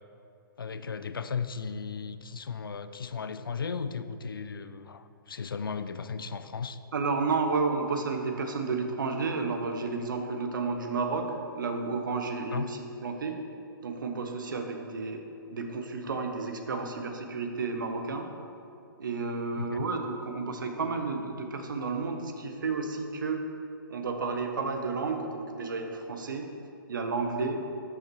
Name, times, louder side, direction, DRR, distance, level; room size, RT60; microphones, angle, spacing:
voice 1, 0.6-6.8 12.5-12.7 19.6-19.9, left 5 dB, 70° left, 11 dB, 0.4 m, -35 dB
voice 2, 6.9-11.2 11.5-13.4 13.8-15.2 15.5-18.3 19.0-23.4 23.9-26.5 26.9-27.6, right 4 dB, 60° right, 5 dB, 0.9 m, -31 dB
12.5 x 5.6 x 3.1 m, 2.7 s
figure-of-eight pair, 125°, 12 cm